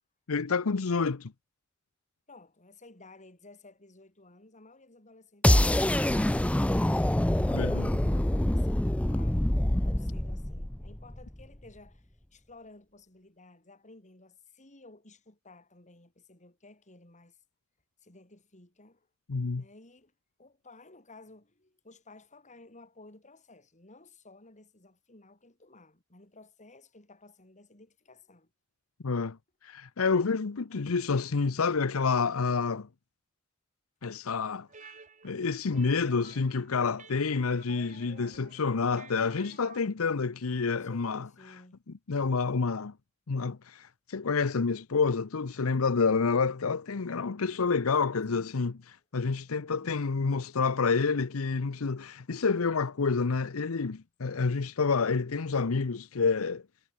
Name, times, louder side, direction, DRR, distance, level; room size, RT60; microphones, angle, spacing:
voice 1, 0.3-1.3 7.5-7.9 19.3-19.6 29.0-29.4 29.6-32.9 34.0-34.7 35.2-41.3 42.1-42.9 43.3-56.6, left 4 dB, 85° left, 0.7 m, -28 dB
voice 2, 2.3-7.0 7.4-9.5 9.8-17.4 18.0-19.1 19.5-20.1 20.4-28.5 40.8-41.8 48.3-48.5 49.7-50.1, left 2 dB, 35° left, 5.0 m, -55 dB
sound 1, 5.4-11.4, left 1 dB, 5° left, 0.4 m, -26 dB
sound 2, 34.7-39.8, right 5 dB, 35° right, 2.1 m, -53 dB
head